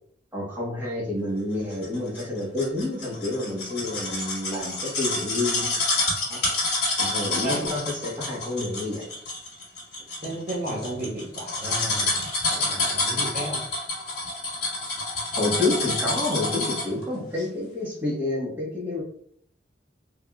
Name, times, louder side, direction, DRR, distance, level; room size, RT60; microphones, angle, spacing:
voice 1, 0.3-5.8 6.3-6.4 7.0-9.1 15.4-19.0, left 2 dB, 10° right, -5 dB, 1.1 m, -29 dB
sound 1, 1.8-17.0 17.4-17.5, left 2 dB, 65° left, 1.3 m, -28 dB
voice 2, 7.4-7.8 10.2-12.2 12.5-13.6, right 1 dB, 50° right, -4 dB, 1.0 m, -33 dB
3.4 x 2.4 x 2.2 m, 0.62 s
head